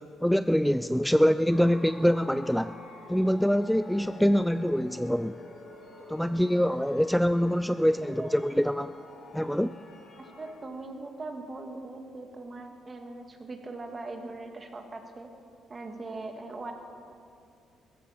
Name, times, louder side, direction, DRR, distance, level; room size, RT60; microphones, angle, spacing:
voice 1, 0.0-2.8 3.1-5.4 6.1-8.9 9.3-9.7, equal, ahead, 12 dB, 0.3 m, -25 dB
sound 1, 1.4-10.5, left 2 dB, 65° left, 5.0 m, -48 dB
voice 2, 8.0-8.3 10.2-15.3 15.7-16.7, right 2 dB, 30° right, 5 dB, 1.9 m, -40 dB
16.0 x 14.5 x 5.8 m, 2.4 s
cardioid pair, 90°, 0 cm